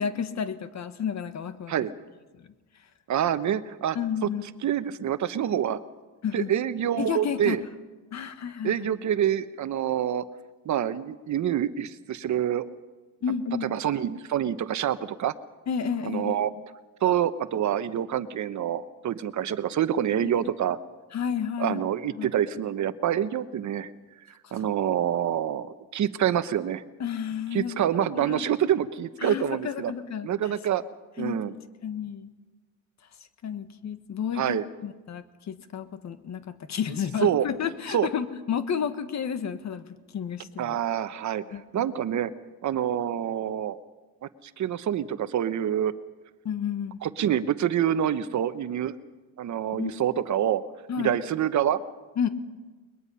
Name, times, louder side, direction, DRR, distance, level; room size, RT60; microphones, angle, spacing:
voice 1, 0.0-1.7 2.3-2.4 3.9-4.4 6.2-6.5 7.0-7.6 8.1-8.9 13.2-13.7 15.7-16.4 20.2-20.5 21.1-21.8 22.1-22.3 24.4-24.6 27.0-27.8 28.2-28.5 29.2-30.5 31.2-31.4 31.8-32.3 33.4-39.9 40.1-40.8 41.5-41.9 46.4-47.0 49.7-49.9 50.9-51.1 52.2-52.3, left 7 dB, 50° left, 10 dB, 1.5 m, -31 dB
voice 2, 3.1-4.0 4.2-4.3 4.6-5.8 6.3-7.6 8.6-10.2 10.6-12.7 13.6-15.3 16.0-16.5 17.0-20.8 21.6-23.9 24.5-26.8 27.5-29.9 30.2-30.8 31.2-31.5 34.4-34.6 37.2-37.5 37.9-38.1 40.6-42.3 42.6-43.8 44.4-45.9 47.0-49.0 49.4-50.6 51.0-51.8, right 10 dB, 55° right, 12 dB, 1.0 m, -26 dB
21.5 x 21.5 x 5.6 m, 1.2 s
cardioid pair, 105°, 35 cm